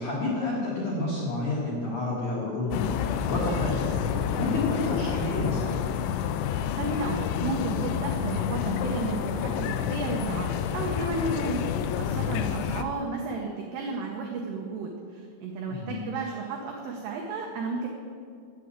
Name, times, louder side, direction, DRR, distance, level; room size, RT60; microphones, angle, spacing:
voice 1, 0.0-5.8 15.7-16.0, left 2 dB, 60° left, -6 dB, 2.2 m, -30 dB
sound 1, 2.7-12.8, left 9 dB, 85° left, 2.7 m, -29 dB
voice 2, 6.8-11.6 12.0-17.9, right 3 dB, 80° right, 1 dB, 2.4 m, -33 dB
8.2 x 7.6 x 8.6 m, 2.3 s
omnidirectional pair, 6.0 m